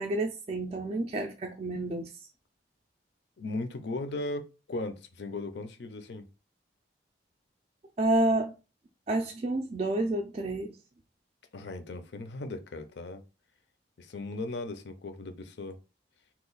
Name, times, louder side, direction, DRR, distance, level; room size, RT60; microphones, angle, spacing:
voice 1, 0.0-2.3 8.0-8.5 9.1-10.8, right 2 dB, 35° right, 0.3 m, -29 dB
voice 2, 3.4-6.3 11.5-13.2 14.0-15.8, left 2 dB, 70° left, 0.5 m, -37 dB
2.9 x 2.3 x 3.9 m
head